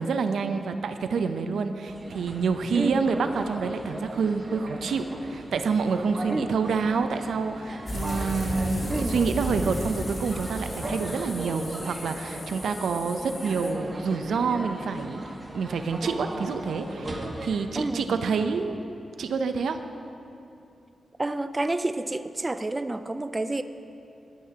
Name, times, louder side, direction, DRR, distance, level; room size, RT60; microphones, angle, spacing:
voice 1, 0.0-15.2 15.5-18.8 19.2-19.8, right 5 dB, 85° right, 8 dB, 0.6 m, -27 dB
sound 1, 1.9-17.6, right 1 dB, 40° right, 2.1 m, -38 dB
voice 2, 2.7-3.1 6.3-6.5 8.9-9.2 17.8-18.0 21.2-23.6, right 2 dB, 25° right, 10 dB, 0.4 m, -29 dB
sound 2, 7.9-13.7, left 1 dB, 30° left, 1.7 m, -35 dB
17.5 x 12.5 x 2.9 m, 2.7 s
cardioid pair, 75°, 0 cm